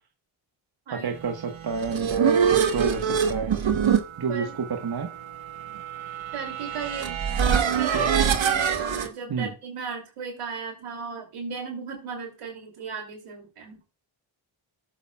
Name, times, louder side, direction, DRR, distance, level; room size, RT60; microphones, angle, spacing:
voice 1, 0.9-3.6 4.2-5.1 7.9-8.1 9.3-9.5, right 5 dB, 50° right, 5 dB, 1.4 m, -29 dB
sound 1, 1.5-9.1, right 7 dB, 65° right, 1.3 m, -25 dB
voice 2, 6.3-13.8, right 5 dB, 85° right, 2 dB, 2.9 m, -36 dB
14.0 x 7.5 x 2.3 m, 0.31 s
cardioid pair, 50°, 50 cm